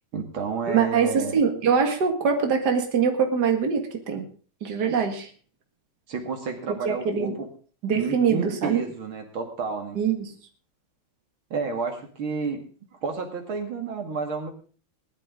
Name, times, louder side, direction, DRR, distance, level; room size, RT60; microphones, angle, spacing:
voice 1, 0.1-1.4 6.1-7.5 7.9-10.0 11.5-12.6 12.9-14.5, right 4 dB, 75° right, 4 dB, 2.9 m, -31 dB
voice 2, 0.7-4.2 4.6-5.3 6.8-7.4 7.8-8.8 10.0-10.3, right 6 dB, 50° right, 4 dB, 2.5 m, -23 dB
19.5 x 12.0 x 3.7 m, 0.40 s
omnidirectional pair, 2.3 m